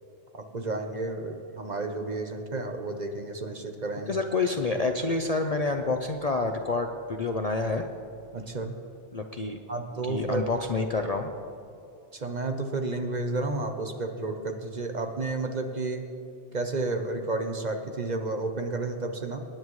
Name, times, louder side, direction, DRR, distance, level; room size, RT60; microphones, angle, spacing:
voice 1, 0.3-4.2 8.3-8.7 9.7-10.5 12.1-16.0 16.5-19.4, right 3 dB, 40° right, 5 dB, 0.9 m, -31 dB
voice 2, 4.1-7.9 9.1-9.6 10.0-11.3, left 3 dB, 45° left, 5 dB, 0.5 m, -28 dB
24.5 x 10.5 x 3.1 m, 2.5 s
omnidirectional pair, 1.2 m